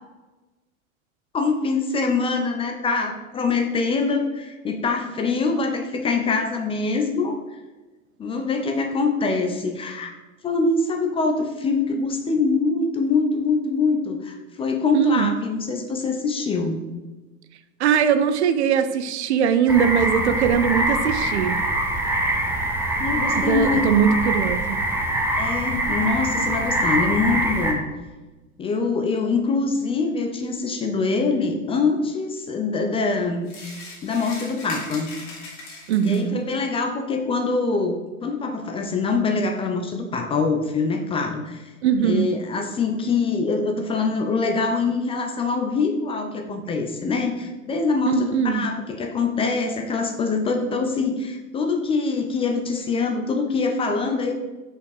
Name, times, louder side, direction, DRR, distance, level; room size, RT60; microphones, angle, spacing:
voice 1, 1.3-7.6 8.2-10.1 10.4-16.8 23.0-23.9 25.4-27.8 28.6-33.5 34.0-35.1 36.0-38.0 38.2-41.7 42.0-54.3, left 4 dB, 15° left, 4 dB, 0.5 m, -24 dB
voice 2, 14.9-15.3 17.8-21.6 23.3-24.8 35.9-36.4 41.8-42.3 48.1-48.6, right 8 dB, 50° right, 11 dB, 0.6 m, -20 dB
sound 1, 19.7-27.7, right 1 dB, 5° right, 1.0 m, -24 dB
sound 2, 33.4-36.4, left 2 dB, 40° left, 2.3 m, -39 dB
6.2 x 5.5 x 4.9 m, 1.2 s
figure-of-eight pair, 90°, 42 cm